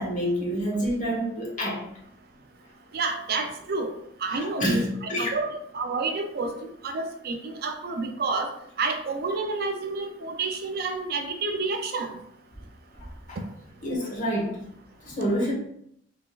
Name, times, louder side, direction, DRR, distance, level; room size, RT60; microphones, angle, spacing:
voice 1, 0.0-1.8 4.4-5.3 13.3-13.4 13.8-14.6 15.0-15.5, equal, 45° left, -3 dB, 1.2 m, -27 dB
voice 2, 2.9-3.9 4.2-8.5 8.8-12.2 13.4-13.5, right 3 dB, 55° right, 5 dB, 0.4 m, -29 dB
3.8 x 3.4 x 2.4 m, 0.73 s
head